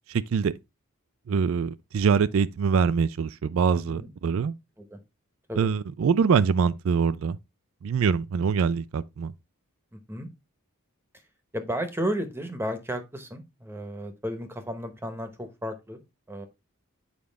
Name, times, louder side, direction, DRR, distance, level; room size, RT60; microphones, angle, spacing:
voice 1, 0.1-0.5 1.3-4.5 5.6-7.4 7.8-9.3, right 6 dB, 65° right, 0.3 m, -24 dB
voice 2, 9.9-10.3 11.5-16.0 16.3-16.5, equal, 10° right, 0.9 m, -33 dB
7.4 x 4.8 x 3.4 m
head